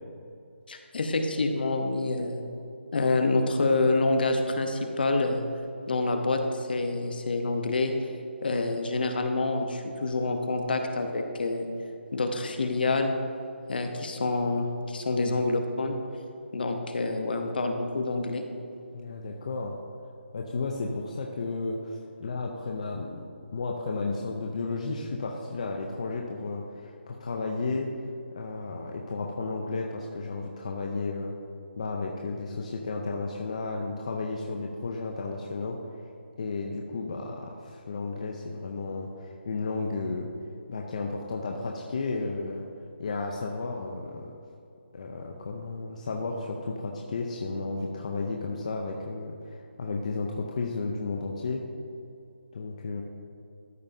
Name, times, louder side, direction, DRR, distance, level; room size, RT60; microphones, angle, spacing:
voice 1, 0.7-2.4 2.9-5.4 5.9-7.9 8.4-11.7 12.1-13.1 13.7-16.0 16.5-18.4, left 3 dB, 50° left, 5 dB, 0.9 m, -27 dB
voice 2, 18.9-19.7 20.3-23.2 23.5-27.9 28.3-31.3 31.8-35.8 36.4-40.3 40.7-42.6 43.0-44.3 44.9-51.6 52.5-53.0, left 3 dB, 35° left, 0 dB, 0.5 m, -33 dB
13.0 x 5.4 x 2.7 m, 2.7 s
hypercardioid pair, 170°, 6 cm